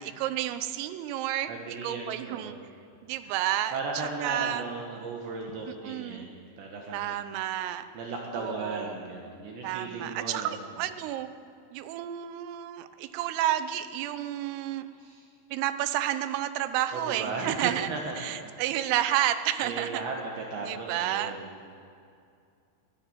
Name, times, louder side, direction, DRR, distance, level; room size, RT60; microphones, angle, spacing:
voice 1, 0.0-2.6 3.0-3.8 4.2-4.6 5.9-6.3 6.9-7.9 8.4-9.0 9.6-11.3 11.7-14.9 15.5-17.9 18.2-20.0 20.6-21.4, right 12 dB, 85° right, 11 dB, 3.5 m, -30 dB
voice 2, 1.5-2.6 3.2-3.4 3.7-7.2 7.9-10.6 14.9-15.3 16.9-18.6 19.6-21.7, right 3 dB, 65° right, 0 dB, 3.8 m, -36 dB
21.0 x 14.0 x 9.3 m, 2.4 s
omnidirectional pair, 5.8 m